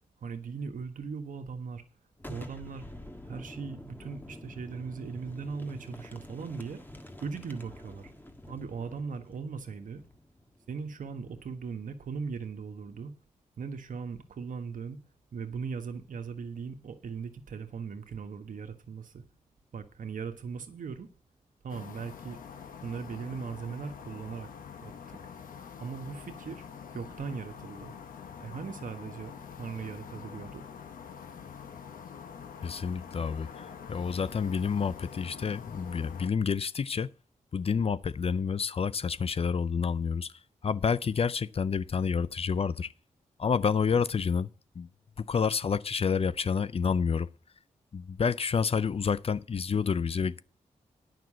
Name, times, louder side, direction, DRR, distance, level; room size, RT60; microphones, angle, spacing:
voice 1, 0.2-1.8 2.3-2.9 3.3-6.8 7.2-8.1 8.5-10.0 10.7-13.1 13.6-15.0 15.3-19.2 19.7-21.1 21.6-22.4 22.8-24.5 24.8-25.2 25.8-26.6 26.9-28.0 28.4-30.6, right 5 dB, 70° right, 1.4 m, -39 dB
Boom, 2.2-11.8, left 1 dB, 15° left, 1.6 m, -48 dB
sound 1, 21.7-36.3, left 7 dB, 85° left, 1.1 m, -45 dB
voice 2, 32.6-33.6 33.9-37.1 37.5-40.3 40.6-42.9 43.4-44.5 44.8-44.9 45.2-47.3 47.9-50.4, left 6 dB, 45° left, 0.5 m, -29 dB
9.3 x 6.0 x 7.5 m
cardioid pair, 60°, 14 cm